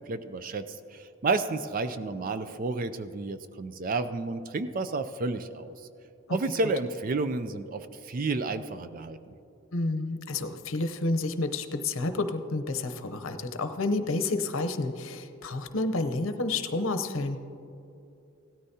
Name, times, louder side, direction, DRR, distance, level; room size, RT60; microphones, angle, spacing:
voice 1, 0.1-5.8 6.3-9.2, right 3 dB, 40° right, 11 dB, 0.4 m, -31 dB
voice 2, 9.7-17.4, left 2 dB, 75° left, 8 dB, 0.7 m, -30 dB
17.0 x 13.5 x 2.8 m, 2.7 s
head